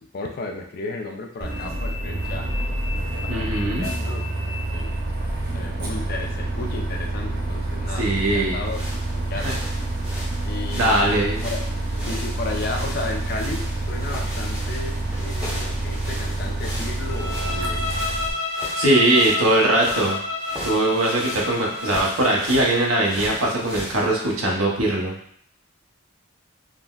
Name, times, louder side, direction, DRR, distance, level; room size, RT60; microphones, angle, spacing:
voice 1, 0.1-2.5 3.3-5.0 5.5-8.9 9.1-9.6 10.5-11.1 11.4-11.6 12.1-17.9, left 3 dB, 45° left, 2 dB, 0.4 m, -34 dB
Bus, 1.4-18.3, right 2 dB, 50° right, 0.6 m, -27 dB
voice 2, 3.3-3.9 8.0-8.6 9.3-9.6 10.8-11.5 18.8-20.2 20.6-25.1, right 1 dB, 80° right, -2 dB, 0.8 m, -21 dB
sound 1, 8.6-24.3, equal, 5° right, 0.8 m, -38 dB
Bowed string instrument, 17.1-22.0, left 3 dB, 75° left, 0.8 m, -29 dB
3.7 x 2.0 x 2.3 m, 0.64 s
head